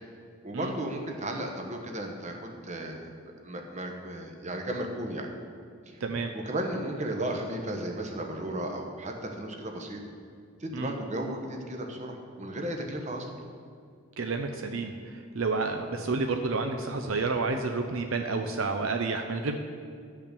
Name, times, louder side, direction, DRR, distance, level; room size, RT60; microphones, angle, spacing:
voice 1, 0.4-3.1 3.4-5.3 5.9-6.0 6.3-10.0 10.6-13.3, right 1 dB, 35° right, 3 dB, 1.1 m, -34 dB
voice 2, 6.0-6.3 10.7-10.9 14.2-14.9 15.3-19.6, right 3 dB, 70° right, 5 dB, 0.6 m, -30 dB
10.5 x 5.7 x 6.8 m, 2.2 s
head